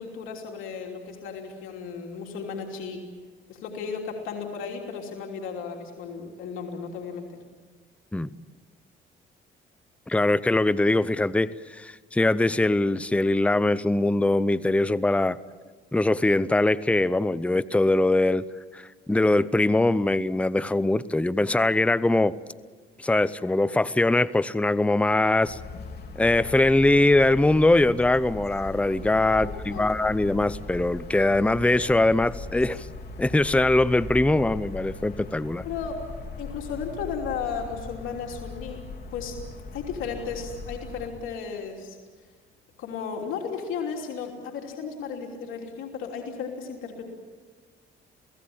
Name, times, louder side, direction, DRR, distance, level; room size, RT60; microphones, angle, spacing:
voice 1, 0.0-3.0 3.5-7.4 29.3-29.5 29.7-29.9 35.6-36.0 36.4-38.8 39.1-39.4 39.7-42.0 42.8-47.0, left 6 dB, 90° left, 1 dB, 3.1 m, -34 dB
voice 2, 10.1-15.4 15.9-18.5 18.7-22.4 23.0-25.6 26.2-32.9 33.2-35.6, left 2 dB, 5° left, 16 dB, 0.7 m, -22 dB
sound 1, 25.4-41.1, left 3 dB, 55° left, 3.6 m, -39 dB
28.5 x 17.5 x 8.7 m, 1.5 s
cardioid pair, 90°, 20 cm